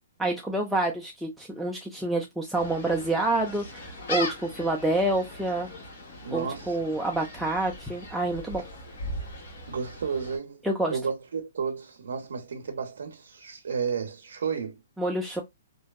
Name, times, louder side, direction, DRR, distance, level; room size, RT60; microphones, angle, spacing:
voice 1, 0.2-5.7 6.3-8.6 10.6-11.0 15.0-15.4, right 2 dB, ahead, 0.3 m, -28 dB
Gull seagull, 2.5-10.4, left 1 dB, 60° left, 1.2 m, -39 dB
voice 2, 6.2-6.8 9.7-10.6 10.9-14.8, right 6 dB, 80° right, 0.5 m, -32 dB
2.6 x 2.2 x 2.2 m
hypercardioid pair, 155°, 0 cm